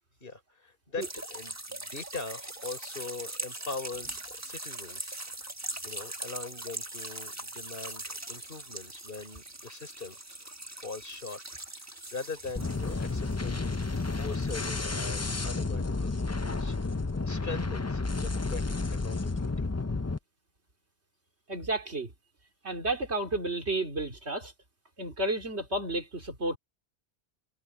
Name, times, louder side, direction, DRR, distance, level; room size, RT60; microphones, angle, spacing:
voice 1, 0.2-5.2 5.8-11.4 12.1-18.8 19.0-19.7, left 4 dB, 55° left, 4.4 m, -42 dB
sound 1, 1.0-14.7, right 2 dB, 15° right, 1.2 m, -41 dB
sound 2, 12.6-20.2, left 3 dB, 20° left, 0.5 m, -31 dB
voice 2, 21.5-22.1 22.6-24.5 25.0-26.6, right 2 dB, 85° right, 3.8 m, -31 dB
omnidirectional pair, 1.1 m